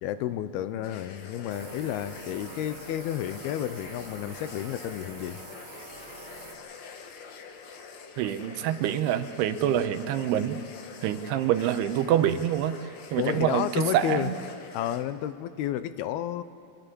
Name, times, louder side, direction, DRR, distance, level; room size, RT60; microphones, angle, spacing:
voice 1, 0.0-5.4 13.2-14.3 14.7-16.4, left 11 dB, 80° left, 13 dB, 2.6 m, -31 dB
sound 1, 0.8-15.1, left 5 dB, 60° left, 2.0 m, -46 dB
sound 2, 1.5-6.6, right 3 dB, 40° right, 3.7 m, -46 dB
voice 2, 8.2-10.6 11.0-12.8 13.1-14.3, right 11 dB, 85° right, 10 dB, 2.9 m, -26 dB
26.0 x 14.0 x 9.9 m, 2.7 s
omnidirectional pair, 4.6 m